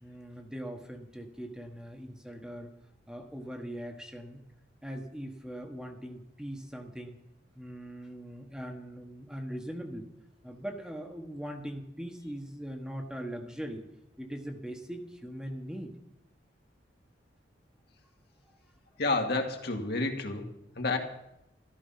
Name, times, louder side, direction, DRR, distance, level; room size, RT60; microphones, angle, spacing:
voice 1, 0.0-2.7 3.1-4.4 4.8-7.2 7.5-10.1 10.4-13.8 14.2-16.0, equal, 5° right, 3 dB, 1.4 m, -41 dB
voice 2, 19.0-20.5 20.8-21.0, left 3 dB, 60° left, 3 dB, 2.0 m, -29 dB
14.0 x 13.0 x 5.7 m, 0.84 s
head